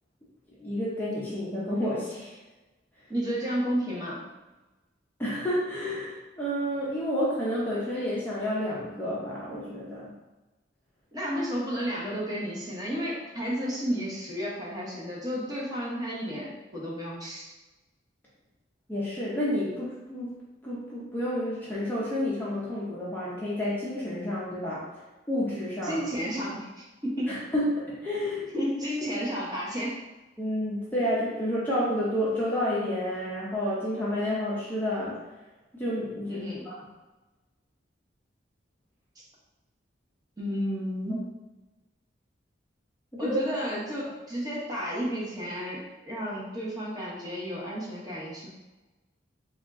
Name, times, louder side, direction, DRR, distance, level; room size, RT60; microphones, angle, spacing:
voice 1, 0.6-2.3 5.2-10.1 18.9-20.4 20.6-24.8 25.3-26.0 27.3-28.5 30.4-35.2 35.7-36.8 43.1-43.4, left 1 dB, 10° left, -7 dB, 0.6 m, -30 dB
voice 2, 3.1-4.2 11.1-17.5 25.8-27.3 28.5-30.0 36.3-36.6 40.4-41.3 43.2-48.5, equal, 20° right, -6 dB, 1.0 m, -32 dB
3.5 x 2.4 x 3.6 m, 1.1 s
head